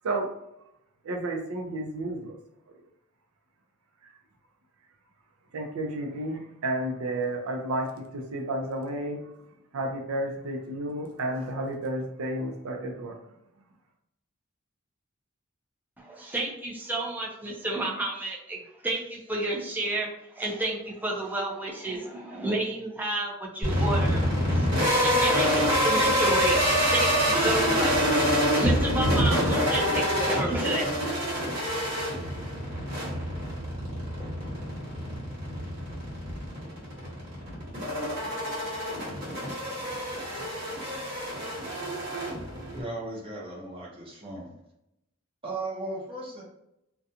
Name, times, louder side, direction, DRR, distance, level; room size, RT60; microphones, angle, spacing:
voice 1, 1.0-2.3 5.5-9.3 9.7-13.1, right 1 dB, 85° right, 2 dB, 0.5 m, -31 dB
voice 2, 16.0-20.1 20.4-24.2 24.5-27.9 28.5-31.2, right 2 dB, 10° right, -2 dB, 0.4 m, -31 dB
sound 1, 23.6-42.8, equal, 40° right, 1.2 m, -26 dB
voice 3, 42.5-44.5 45.4-46.4, right 2 dB, 25° right, -5 dB, 0.8 m, -36 dB
2.4 x 2.2 x 2.7 m, 0.83 s
head